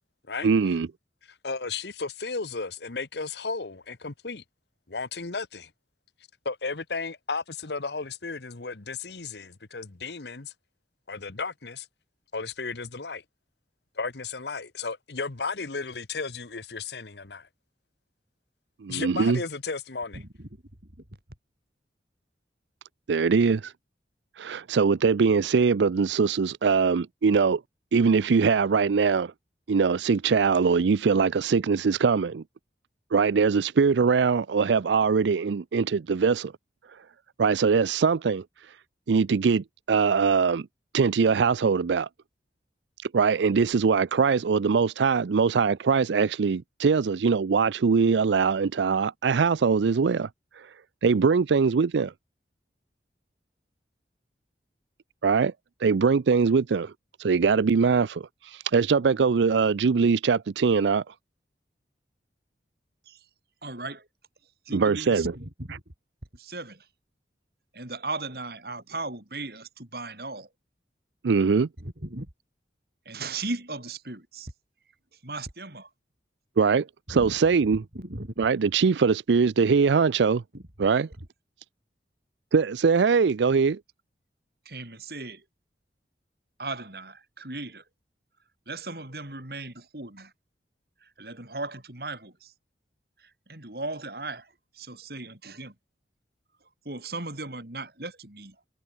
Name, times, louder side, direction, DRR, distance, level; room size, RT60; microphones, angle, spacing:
voice 1, 0.4-0.9 18.8-19.4 23.1-23.7 24.4-27.6 27.9-29.3 29.7-32.4 33.1-36.5 37.4-38.4 39.1-40.7 40.9-42.1 43.1-50.3 50.6-50.7 51.0-52.1 55.2-55.5 55.8-56.9 57.2-61.1 64.7-65.3 71.2-71.7 76.6-77.8 78.4-80.4 80.8-81.1 82.5-83.8, right 5 dB, 80° right, 0.4 m, -22 dB
voice 2, 1.2-4.4 4.9-5.7 6.4-10.5 11.1-11.9 12.3-13.2 13.9-17.5 18.9-20.2, left 4 dB, 70° left, 1.2 m, -34 dB
voice 3, 20.1-20.5 63.1-63.3 63.6-64.1 64.7-65.8 66.3-66.9 67.7-70.5 71.8-72.3 73.1-74.5 75.2-75.9 77.1-77.4 77.9-78.3 80.5-80.6 80.9-81.0 84.7-85.4 86.6-87.8 88.7-90.3 91.0-92.5 93.2-95.7 96.9-98.6, right 2 dB, 60° right, 3.8 m, -37 dB
head